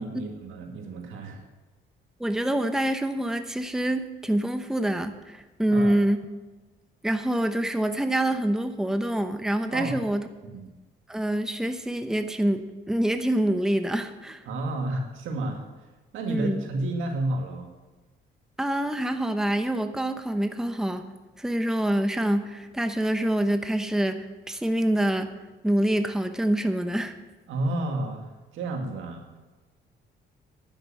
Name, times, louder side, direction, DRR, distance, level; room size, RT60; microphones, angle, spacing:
voice 1, 0.0-1.4 5.7-6.0 9.7-10.0 10.4-10.6 14.5-15.9 16.1-17.7 27.5-29.4, right 2 dB, 85° right, 3 dB, 2.0 m, -31 dB
voice 2, 2.2-6.3 7.0-10.3 11.1-14.4 16.3-16.7 18.6-21.1 21.4-25.4 25.6-27.2, right 1 dB, 5° right, 8 dB, 0.9 m, -26 dB
10.0 x 8.0 x 7.5 m, 1.2 s
cardioid pair, 90°, 20 cm